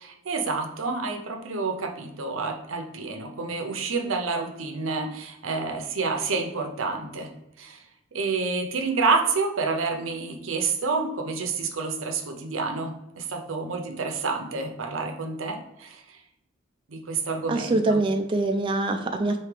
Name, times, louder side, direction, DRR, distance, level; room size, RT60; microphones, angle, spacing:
voice 1, 0.0-7.3 7.6-7.8 8.1-16.0 16.9-18.0, right 4 dB, 90° right, 4 dB, 0.7 m, -29 dB
voice 2, 17.5-19.4, right 2 dB, 25° right, 4 dB, 0.3 m, -24 dB
4.7 x 2.8 x 3.2 m, 0.87 s
head